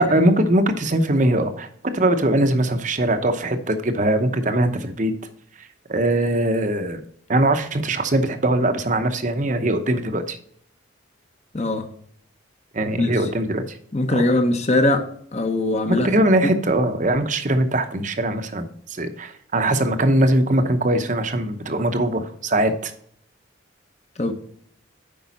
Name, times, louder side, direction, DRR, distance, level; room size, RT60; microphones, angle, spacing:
voice 1, 0.0-1.7 1.9-5.1 5.9-7.0 7.3-10.4 12.7-13.8 14.1-14.2 15.9-22.9, right 1 dB, 40° right, 8 dB, 0.8 m, -21 dB
voice 2, 11.5-11.9 13.0-13.1 13.9-15.0 15.3-16.1 24.2-24.3, left 2 dB, 35° left, 6 dB, 0.9 m, -20 dB
8.4 x 5.4 x 4.1 m, 0.64 s
head